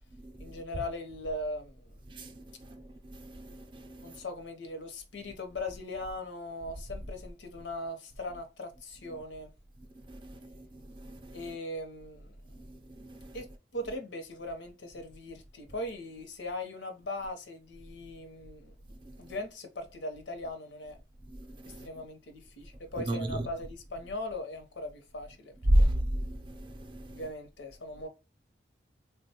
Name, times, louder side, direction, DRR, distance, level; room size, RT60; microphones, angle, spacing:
voice 1, 0.4-2.0 4.0-9.5 11.3-12.4 13.3-13.5 13.7-18.7 19.2-21.0 21.8-25.5 25.8-25.9 27.1-28.1, left 1 dB, 90° left, 0.7 m, -39 dB
voice 2, 2.1-4.2 10.1-11.4 12.5-13.4 21.4-21.9 23.1-23.5 25.7-27.2, right 1 dB, 25° right, 0.4 m, -32 dB
3.5 x 2.2 x 2.8 m
head